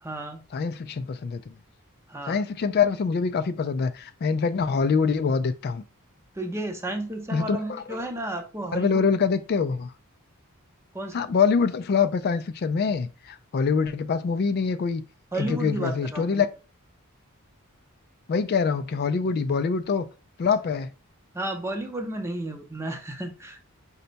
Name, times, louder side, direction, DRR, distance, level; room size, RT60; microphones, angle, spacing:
voice 1, 0.0-0.4 2.1-2.4 6.3-9.0 10.9-11.3 15.3-16.4 21.3-23.6, right 1 dB, 10° right, 0.7 m, -32 dB
voice 2, 0.5-1.5 2.3-5.8 7.3-8.0 8.7-9.9 11.1-15.0 15.4-16.5 18.3-20.1 20.4-20.9, left 5 dB, 45° left, 0.3 m, -25 dB
5.4 x 2.2 x 3.9 m
head